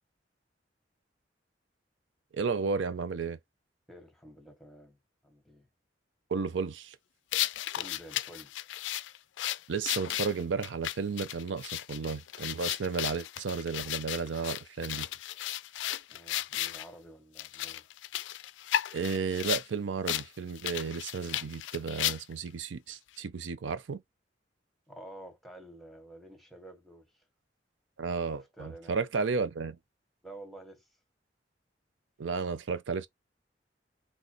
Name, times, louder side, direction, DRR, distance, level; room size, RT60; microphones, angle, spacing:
voice 1, 2.3-3.4 6.3-7.0 9.7-15.1 18.9-24.0 28.0-29.8 32.2-33.1, right 5 dB, 85° right, 0.5 m, -33 dB
voice 2, 3.9-5.7 7.7-8.5 16.1-17.8 24.9-27.2 28.3-29.0 30.2-30.9, right 1 dB, ahead, 1.2 m, -50 dB
sound 1, 7.3-16.9 17.4-19.7 20.1-20.3 20.5-22.5, left 13 dB, 75° left, 0.3 m, -34 dB
3.9 x 2.9 x 3.0 m
head